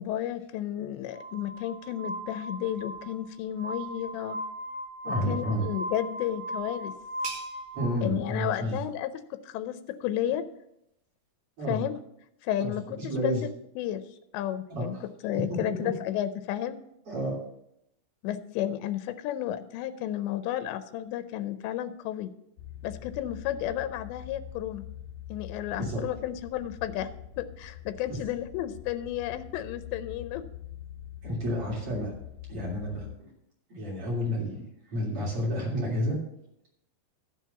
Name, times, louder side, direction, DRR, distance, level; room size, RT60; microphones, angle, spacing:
voice 1, 0.0-4.4 5.3-6.9 8.0-10.4 11.7-11.9 12.4-13.5 13.8-14.0 14.3-14.9 15.2-16.8 18.2-22.3 22.8-24.8 25.3-27.1 27.4-30.4, left 12 dB, 90° left, 11 dB, 2.9 m, -32 dB
Glass, 1.1-7.9, right 1 dB, 85° right, 5.0 m, -38 dB
voice 2, 5.0-5.6 7.7-8.8 11.6-11.8 12.6-12.7 13.0-13.4 14.7-14.9 15.5-15.9 17.1-17.4 25.8-26.0 28.1-28.2 31.2-32.1 32.5-33.3 33.7-34.6 34.9-36.2, equal, 35° right, -3 dB, 3.5 m, -30 dB
sound 1, 5.9-11.3, right 4 dB, 60° right, 3.2 m, -48 dB
sound 2, 22.6-33.2, left 10 dB, 55° left, 2.7 m, -44 dB
13.5 x 4.6 x 6.8 m, 0.79 s
omnidirectional pair, 4.9 m